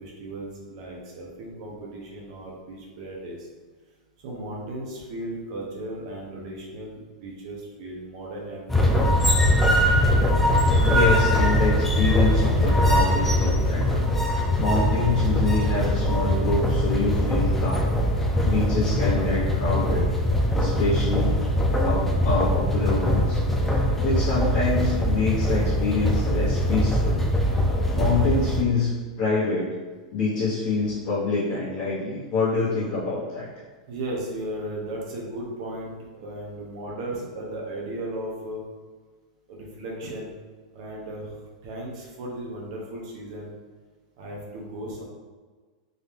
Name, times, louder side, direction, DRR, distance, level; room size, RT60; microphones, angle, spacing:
voice 1, 0.0-3.5 4.2-8.9 20.4-20.5 30.8-30.9 33.9-38.6 39.5-40.3 40.7-43.5 44.2-45.0, right 1 dB, 55° right, -3 dB, 1.0 m, -36 dB
sound 1, 8.7-28.6, equal, 5° left, 0.4 m, -22 dB
voice 2, 10.9-13.9 14.5-17.9 18.4-20.1 20.5-21.4 21.8-27.2 27.9-28.9 29.2-29.7 30.1-33.5, left 3 dB, 35° left, -12 dB, 1.4 m, -26 dB
3.9 x 2.8 x 3.5 m, 1.4 s
supercardioid pair, 150°, 4 cm